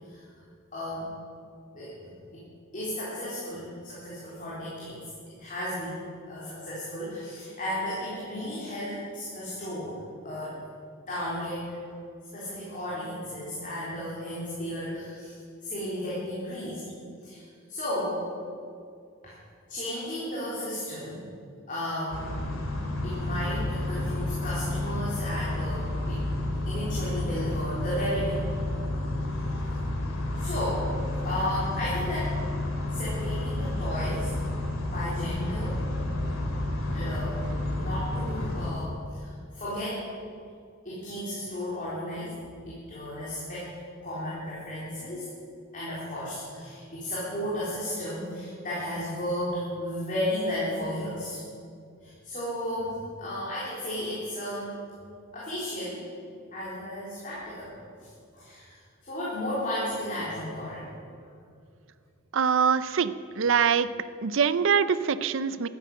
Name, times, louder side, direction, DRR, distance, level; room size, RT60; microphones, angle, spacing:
voice 1, 0.7-1.1 1.7-2.0 2.3-2.4 2.7-5.0 5.4-6.0 6.3-10.6 11.1-11.9 12.3-15.3 15.6-16.8 17.2-17.4 17.7-18.2 19.2-19.3 19.7-21.2 21.7-22.4 23.0-26.2 26.7-28.4 30.4-30.9 31.2-32.4 32.9-34.3 34.8-35.8 36.9-40.0 40.8-43.7 44.0-45.3 45.7-51.4 52.0-54.7 55.3-56.0 56.5-57.7 58.0-58.7 59.0-60.9, left 1 dB, 40° left, -8 dB, 3.9 m, -34 dB
sound 1, 22.1-38.7, left 1 dB, 85° left, 2.3 m, -30 dB
voice 2, 62.3-63.9 64.2-65.7, right 6 dB, 65° right, 14 dB, 0.5 m, -24 dB
13.5 x 10.5 x 7.8 m, 2.3 s
head